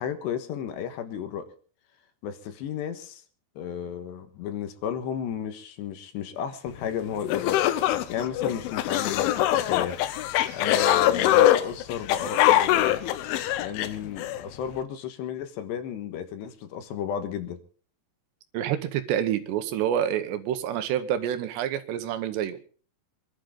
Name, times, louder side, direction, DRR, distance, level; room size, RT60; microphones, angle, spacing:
voice 1, 0.0-1.5 2.2-3.2 3.6-7.6 8.1-10.0 10.5-13.0 13.6-17.6, left 8 dB, 70° left, 9 dB, 3.3 m, -33 dB
sound 1, 6.9-7.0 7.3-14.4, left 13 dB, 85° left, 3.4 m, -23 dB
voice 2, 18.5-22.7, right 10 dB, 75° right, 10 dB, 3.0 m, -28 dB
25.5 x 12.0 x 3.7 m, 0.42 s
omnidirectional pair, 5.4 m